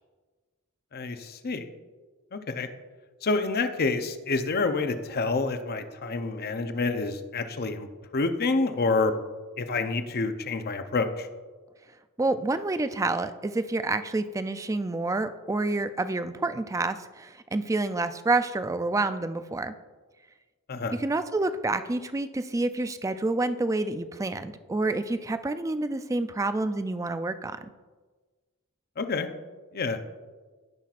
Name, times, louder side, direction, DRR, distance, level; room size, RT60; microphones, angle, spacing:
voice 1, 0.9-1.7 2.3-2.7 3.2-7.9 8.1-9.2 9.6-11.3 20.7-21.0 29.0-29.3 29.7-30.0, left 3 dB, 45° left, 8 dB, 0.6 m, -28 dB
voice 2, 12.2-19.7 21.0-27.6, right 2 dB, 15° right, 10 dB, 0.3 m, -28 dB
16.0 x 5.8 x 2.5 m, 1.3 s
head